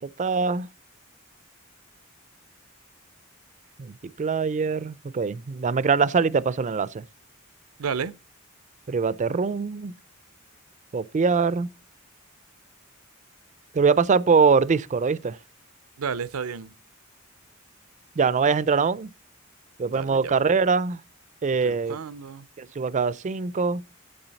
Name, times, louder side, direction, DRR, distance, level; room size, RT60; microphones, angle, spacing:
voice 1, 0.2-0.7 3.8-7.0 8.9-9.9 10.9-11.7 13.7-15.4 18.2-19.1 19.8-21.0 21.4-22.0 22.6-23.8, right 5 dB, 35° right, 0.4 m, -23 dB
voice 2, 7.8-8.1 16.0-16.7 19.9-20.3 21.6-22.5, right 6 dB, 80° right, 0.6 m, -32 dB
8.9 x 8.2 x 4.0 m
head